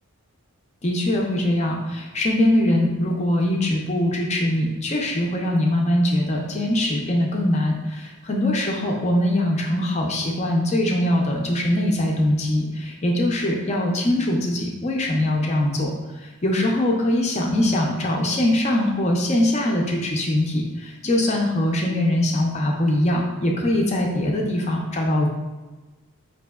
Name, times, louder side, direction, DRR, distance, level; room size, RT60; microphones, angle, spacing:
voice 1, 0.8-25.3, left 1 dB, 30° left, 0 dB, 0.4 m, -22 dB
5.1 x 2.7 x 2.3 m, 1.2 s
head